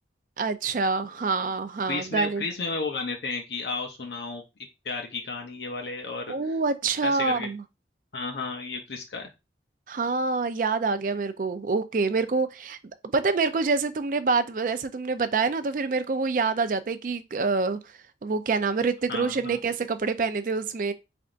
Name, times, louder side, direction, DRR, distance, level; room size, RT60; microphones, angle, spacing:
voice 1, 0.4-2.4 6.3-7.6 9.9-12.8 13.0-17.8 18.2-20.9, right 4 dB, 50° right, 0.4 m, -26 dB
voice 2, 1.9-4.4 4.8-6.3 7.0-7.5 8.1-9.3 19.1-19.6, left 3 dB, 75° left, 0.6 m, -33 dB
3.9 x 3.4 x 2.4 m
head